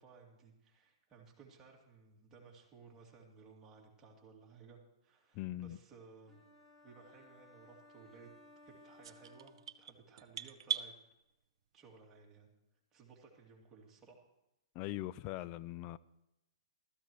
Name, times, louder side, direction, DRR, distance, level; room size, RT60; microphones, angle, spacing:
voice 1, 0.0-6.4 6.8-8.3 8.6-10.9 11.7-12.5 12.9-14.3, right 5 dB, 20° right, 2.7 m, -59 dB
voice 2, 5.3-5.8 14.7-16.0, left 15 dB, 35° left, 0.4 m, -41 dB
sound 1, 6.3-10.2, left 1 dB, ahead, 2.4 m, -61 dB
sound 2, 9.0-10.9, right 8 dB, 70° right, 0.6 m, -40 dB
15.5 x 14.0 x 3.2 m
hypercardioid pair, 140°, 3 cm